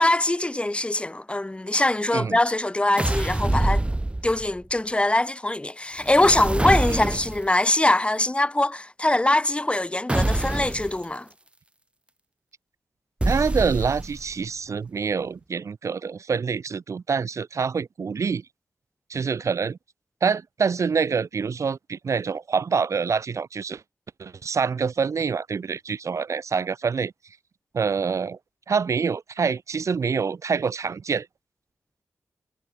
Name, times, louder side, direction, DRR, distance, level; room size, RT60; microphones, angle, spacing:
voice 1, 0.0-3.8 4.2-11.3, left 1 dB, 20° left, 4.2 m, -23 dB
sound 1, 3.0-4.6 6.0-7.5 10.1-10.9 13.2-14.3, right 2 dB, 20° right, 2.3 m, -25 dB
voice 2, 13.2-18.4 19.1-19.8 20.2-23.8 24.2-27.1 27.7-28.4 28.7-31.3, right 5 dB, 70° right, 5.9 m, -26 dB
cardioid pair, 55°, 5 cm